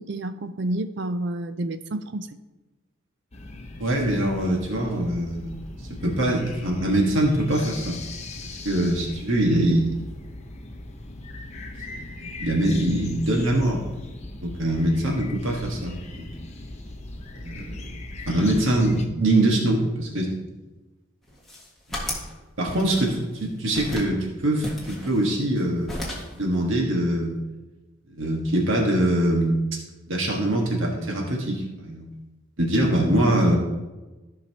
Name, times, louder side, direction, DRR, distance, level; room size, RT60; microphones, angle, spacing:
voice 1, 0.0-2.3, right 1 dB, 60° right, 11 dB, 0.5 m, -29 dB
sound 1, 3.3-19.1, left 2 dB, 35° left, 0.8 m, -39 dB
voice 2, 3.8-5.6 5.9-7.9 8.5-10.0 11.9-14.1 14.4-16.3 17.3-17.9 18.3-20.3 21.9-22.2 22.6-25.9 26.3-27.4 28.1-29.6 30.1-32.1 32.6-33.6, right 1 dB, 75° right, -1 dB, 1.6 m, -23 dB
sound 2, 21.3-22.3 22.7-23.4 23.7-24.1 24.6-25.6 25.9-26.4, left 1 dB, ahead, 1.7 m, -34 dB
15.0 x 5.8 x 2.9 m, 1.1 s
head